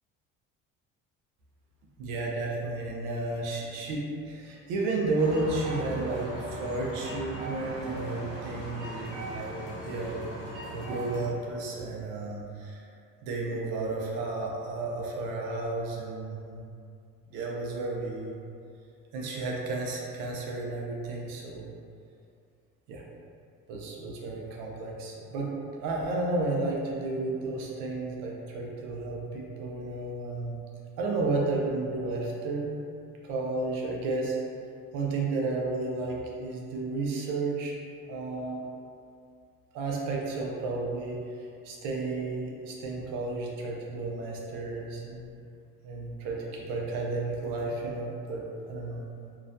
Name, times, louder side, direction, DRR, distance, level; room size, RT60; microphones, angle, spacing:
voice 1, 2.0-10.2 10.7-12.8 13.2-16.6 17.3-18.4 19.1-21.7 22.9-23.0 23.7-30.6 31.0-32.7 33.2-34.4 34.9-37.7 38.1-38.6 39.7-45.4 45.8-49.0, right 3 dB, 85° right, -1 dB, 0.5 m, -32 dB
sound 1, 5.2-11.3, right 1 dB, 50° right, 0.9 m, -39 dB
2.3 x 2.1 x 2.5 m, 2.4 s
supercardioid pair, 85°, 30 cm